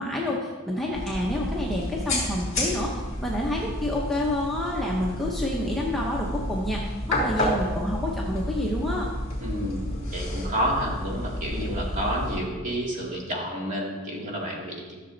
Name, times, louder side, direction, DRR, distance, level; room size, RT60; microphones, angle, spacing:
voice 1, 0.0-9.1, left 1 dB, ahead, -4 dB, 0.9 m, -28 dB
sound 1, 0.9-12.4, left 1 dB, 30° left, 3.1 m, -31 dB
voice 2, 9.4-9.9 10.1-14.9, equal, 35° right, -2 dB, 2.3 m, -30 dB
14.0 x 6.9 x 4.0 m, 1.4 s
head